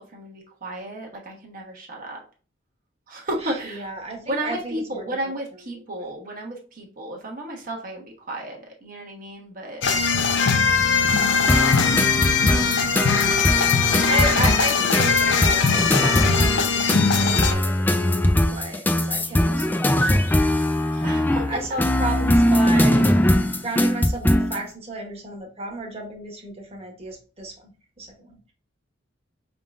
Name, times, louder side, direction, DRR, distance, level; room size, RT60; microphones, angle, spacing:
voice 1, 0.0-2.2 3.1-3.9 4.3-9.8 21.0-21.4, right 1 dB, 50° right, -1 dB, 1.1 m, -33 dB
voice 2, 3.4-5.3 5.9-6.1 12.6-12.9 14.1-20.2 20.5-20.6 20.9-21.1 21.5-23.2 23.6-27.7 28.0-28.5, right 2 dB, 35° right, 1 dB, 1.3 m, -33 dB
sound 1, 9.8-17.5, left 5 dB, 65° left, 0.6 m, -20 dB
sound 2, 11.5-24.6, left 1 dB, 10° left, 0.4 m, -21 dB
5.1 x 3.7 x 2.4 m, 0.38 s
head